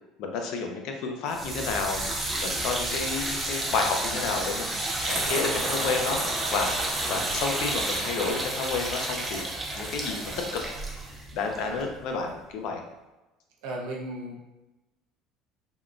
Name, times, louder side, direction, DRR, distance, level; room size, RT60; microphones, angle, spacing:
voice 1, 0.2-6.2 6.5-10.6 11.3-12.8, left 4 dB, 60° left, 3 dB, 0.5 m, -31 dB
sound 1, 1.3-12.4, right 1 dB, 15° right, 0.5 m, -31 dB
sound 2, 5.1-9.5, right 2 dB, 45° right, 1.2 m, -35 dB
voice 2, 13.6-14.5, right 1 dB, 70° right, -1 dB, 0.6 m, -37 dB
3.5 x 2.2 x 2.4 m, 1.0 s
cardioid pair, 155°, 0 cm